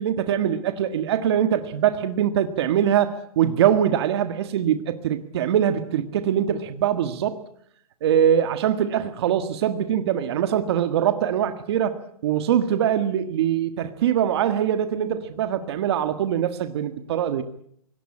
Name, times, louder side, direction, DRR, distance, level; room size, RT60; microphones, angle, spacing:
voice 1, 0.0-7.4 8.0-12.0 12.2-17.4, right 9 dB, 45° right, 9 dB, 1.7 m, -23 dB
24.0 x 18.0 x 8.7 m, 0.67 s
hypercardioid pair, 160°, 19 cm